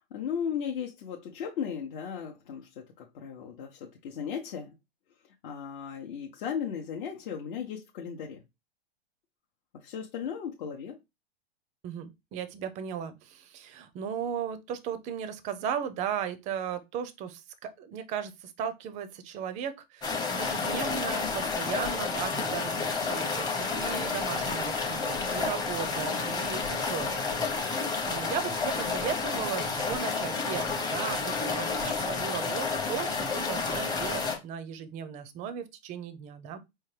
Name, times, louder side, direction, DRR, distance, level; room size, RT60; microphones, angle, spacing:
voice 1, 0.1-4.8 5.4-8.4 9.8-11.0, left 7 dB, 55° left, 0.8 m, -36 dB
voice 2, 11.8-36.6, right 8 dB, 25° right, 0.4 m, -36 dB
sound 1, 20.0-34.4, left 4 dB, 15° left, 0.7 m, -30 dB
4.4 x 2.2 x 3.2 m
hypercardioid pair, 125°, 31 cm